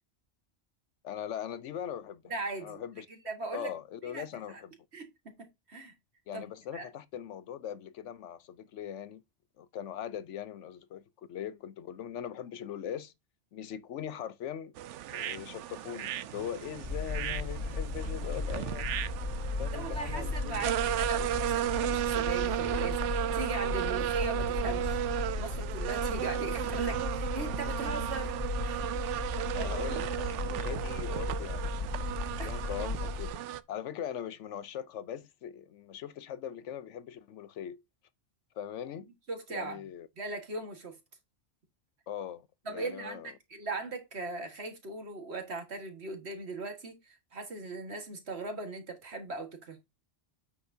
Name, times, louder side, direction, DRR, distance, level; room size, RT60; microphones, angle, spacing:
voice 1, 1.0-2.4 2.6-3.1 3.5-4.7 6.3-9.2 9.6-13.1 13.5-14.7 15.1-18.9 19.6-20.7 29.5-32.2 32.4-33.4 33.7-37.8 38.5-39.1 39.5-40.1 42.1-43.3, left 9 dB, 85° left, 1.0 m, -41 dB
voice 2, 2.3-2.8 3.3-3.7 4.1-4.6 4.9-5.9 6.3-6.4 6.7-6.9 19.7-25.0 25.4-28.8 29.6-29.7 30.3-30.6 32.4-32.5 39.3-39.8 40.2-41.0 42.7-49.8, right 3 dB, 65° right, 2.0 m, -39 dB
sound 1, 14.8-33.6, right 12 dB, 90° right, 0.9 m, -34 dB
sound 2, 16.8-33.3, left 3 dB, 35° left, 1.3 m, -36 dB
8.6 x 6.5 x 2.7 m
omnidirectional pair, 1.2 m